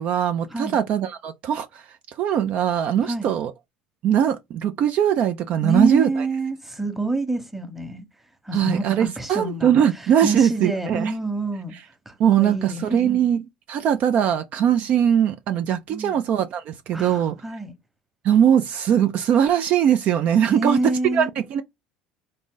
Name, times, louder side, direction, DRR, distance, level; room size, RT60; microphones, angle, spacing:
voice 1, 0.0-3.5 4.0-6.1 8.5-11.1 12.2-17.4 18.2-21.6, right 9 dB, 55° right, 0.4 m, -21 dB
voice 2, 5.6-8.1 8.4-11.8 12.1-13.2 15.9-16.2 16.9-17.7 20.5-21.3, right 2 dB, 10° right, 1.0 m, -27 dB
3.7 x 2.6 x 3.7 m
supercardioid pair, 95°, 3 cm